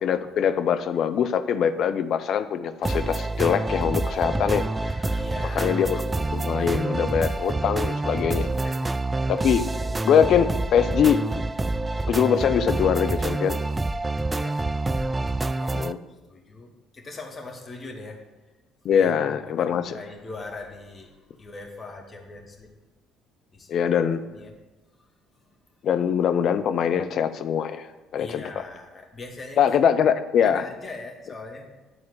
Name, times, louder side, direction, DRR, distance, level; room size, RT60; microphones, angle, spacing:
voice 1, 0.0-5.2 5.6-6.0 6.3-8.5 9.4-9.6 10.0-11.2 12.1-13.6 15.7-16.0 18.8-19.9 23.7-24.2 25.8-27.9 28.1-28.4 29.6-30.6, left 8 dB, 55° left, 10 dB, 0.6 m, -23 dB
sound 1, 2.8-15.9, right 2 dB, 20° right, 0.4 m, -27 dB
voice 2, 5.1-5.9 8.6-9.0 14.3-14.6 15.5-18.2 18.9-22.7 23.5-23.8 24.3-24.5 25.3-25.5 28.2-29.8 30.4-31.7, left 3 dB, 35° left, 1 dB, 2.0 m, -41 dB
9.9 x 4.3 x 7.5 m, 1.2 s
hypercardioid pair, 55°, 0 cm